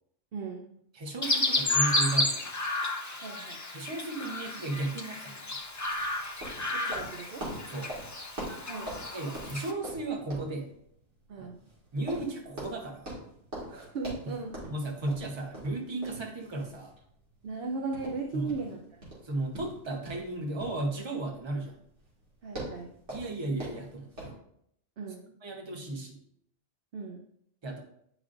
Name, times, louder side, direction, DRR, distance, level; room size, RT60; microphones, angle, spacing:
voice 1, 0.3-0.6 3.2-3.6 6.7-7.4 8.7-9.0 11.3-11.6 13.7-14.5 17.4-18.8 22.4-22.9 25.0-25.2 26.9-27.2, right 4 dB, 60° right, 1 dB, 0.9 m, -37 dB
voice 2, 0.9-2.5 3.7-5.6 7.7-7.9 9.1-10.7 11.4-11.5 11.9-13.1 14.7-16.9 18.3-18.5 19.2-21.8 23.1-24.3 25.4-26.2 27.6-27.8, right 2 dB, 25° right, 1 dB, 0.9 m, -34 dB
Chirp tweet, 1.2-9.7, left 2 dB, 30° left, 0.3 m, -32 dB
sound 1, 5.6-24.3, right 1 dB, 85° right, 2.4 m, -44 dB
9.1 x 4.9 x 2.5 m, 0.72 s
omnidirectional pair, 1.2 m